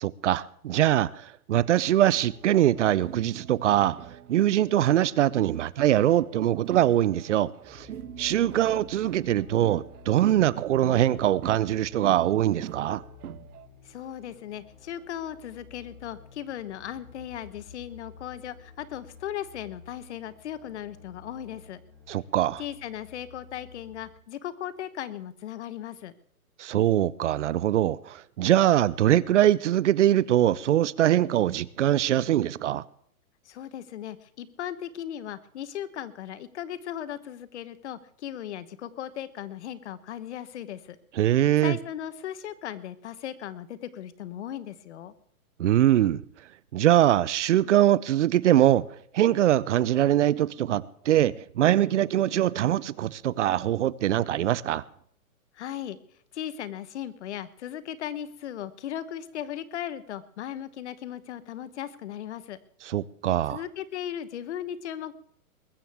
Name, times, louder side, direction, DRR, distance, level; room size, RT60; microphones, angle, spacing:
voice 1, 0.0-4.0 4.3-7.9 8.2-13.0 22.1-22.6 26.6-32.8 41.2-41.8 45.6-46.2 46.7-48.8 49.1-54.8 62.9-63.6, right 12 dB, 55° right, 0.6 m, -23 dB
sound 1, 1.5-13.7, right 11 dB, 80° right, 0.9 m, -44 dB
sound 2, 7.6-24.1, left 5 dB, ahead, 5.2 m, -52 dB
voice 2, 13.8-21.8 22.6-26.1 33.4-41.0 41.6-45.1 55.5-56.0 56.3-62.6 63.5-65.1, left 10 dB, 50° left, 1.1 m, -37 dB
21.5 x 13.5 x 3.5 m
hypercardioid pair, 150°, 44 cm